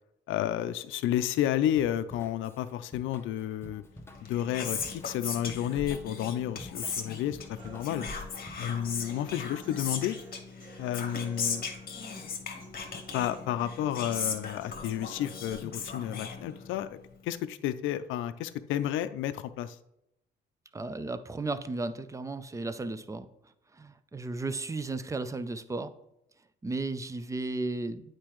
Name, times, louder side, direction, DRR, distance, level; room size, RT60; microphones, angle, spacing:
voice 1, 0.3-3.8 4.3-7.4 7.6-8.1 8.6-10.2 10.8-11.7 13.1-19.8, left 11 dB, 85° left, 13 dB, 0.4 m, -31 dB
Drum kit / Drum, 1.7-9.1, left 1 dB, 10° left, 0.8 m, -50 dB
Whispering, 4.1-16.9, left 5 dB, 50° left, 1.0 m, -38 dB
Human voice, 7.6-15.6, right 2 dB, 85° right, 2.6 m, -51 dB
voice 2, 20.7-23.3 23.7-25.9 26.6-28.2, right 3 dB, 15° right, 12 dB, 0.4 m, -34 dB
8.5 x 4.5 x 3.1 m, 0.81 s
cardioid pair, 90°, 20 cm